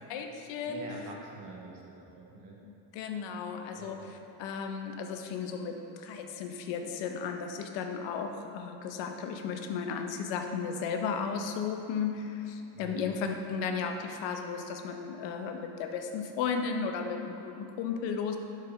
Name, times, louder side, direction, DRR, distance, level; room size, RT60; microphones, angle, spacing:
voice 1, 0.1-1.1 2.7-18.4, left 6 dB, 70° left, 5 dB, 0.7 m, -35 dB
voice 2, 0.6-2.5 3.7-4.0 12.7-13.1, right 2 dB, 50° right, -2 dB, 1.2 m, -45 dB
4.7 x 4.5 x 5.3 m, 3.0 s
cardioid pair, 160°, 45 cm